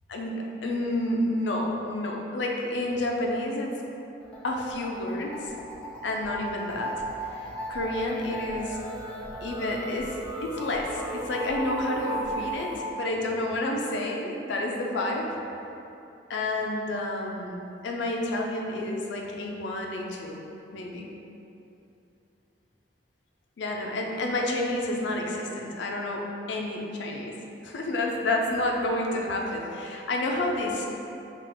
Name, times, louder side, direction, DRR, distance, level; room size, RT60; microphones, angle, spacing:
voice 1, 0.1-3.8 4.4-5.5 6.0-7.0 7.3-8.8 9.4-15.4 16.3-20.4 20.7-21.1 23.6-30.9, left 1 dB, 75° left, 0 dB, 0.4 m, -30 dB
sound 1, 4.2-12.8, right 1 dB, 5° left, 0.7 m, -36 dB
3.7 x 2.4 x 3.5 m, 2.8 s
head